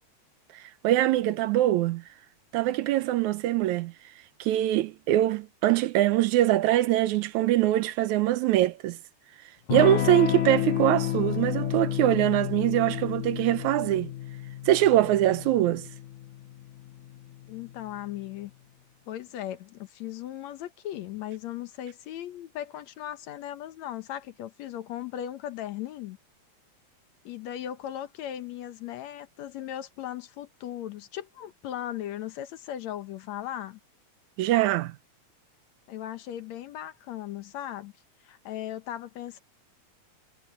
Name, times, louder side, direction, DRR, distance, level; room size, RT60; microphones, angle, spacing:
voice 1, 0.6-2.0 2.5-3.9 4.4-9.0 9.7-14.1 14.7-15.9 34.4-35.0, right 14 dB, 85° right, 2.2 m, -23 dB
Electric guitar / Strum, 9.7-18.0, left 14 dB, 90° left, 2.4 m, -31 dB
voice 2, 17.5-18.5 19.1-26.2 27.3-33.8 35.9-37.9 38.2-39.4, left 12 dB, 70° left, 2.2 m, -37 dB
omnidirectional pair, 3.3 m